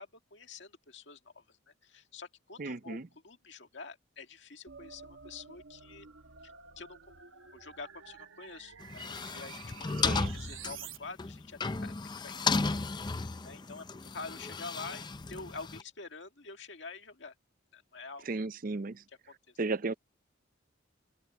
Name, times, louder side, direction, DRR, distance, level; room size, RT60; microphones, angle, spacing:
voice 1, 0.0-6.1 6.4-7.0 7.5-12.8 13.4-17.3 17.7-18.3 19.3-19.5, left 4 dB, 65° left, 2.0 m, -47 dB
voice 2, 2.6-3.1 10.0-10.3 18.3-19.0 19.6-19.9, right 3 dB, 45° right, 0.6 m, -34 dB
sound 1, 4.7-11.0, right 7 dB, 90° right, 1.1 m, -50 dB
sound 2, 8.8-15.8, left 4 dB, 20° left, 0.5 m, -34 dB
open air
head